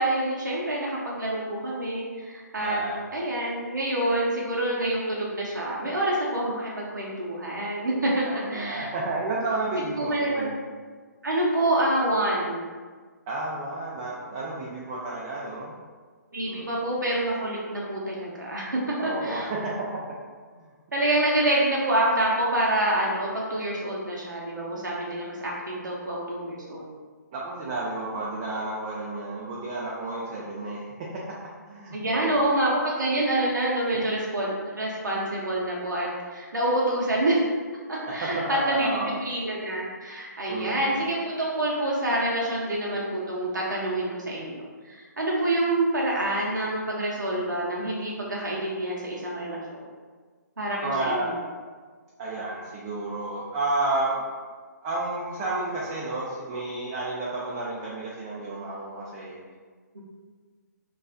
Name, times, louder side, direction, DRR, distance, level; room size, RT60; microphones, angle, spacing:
voice 1, 0.0-2.8 3.1-8.9 9.8-10.5 11.2-12.7 16.3-18.7 19.0-19.5 20.9-26.9 31.9-37.5 37.9-49.8 50.6-51.4 59.9-60.0, right 1 dB, 90° right, -4 dB, 0.5 m, -27 dB
voice 2, 2.6-3.0 8.3-10.5 13.3-15.7 16.4-16.7 19.0-19.6 27.3-30.9 31.7-32.3 38.5-39.2 40.5-41.0 50.8-51.3 52.2-54.2 54.8-59.4, right 2 dB, 25° right, -5 dB, 0.3 m, -31 dB
2.4 x 2.3 x 2.3 m, 1.5 s
figure-of-eight pair, 140°, 10 cm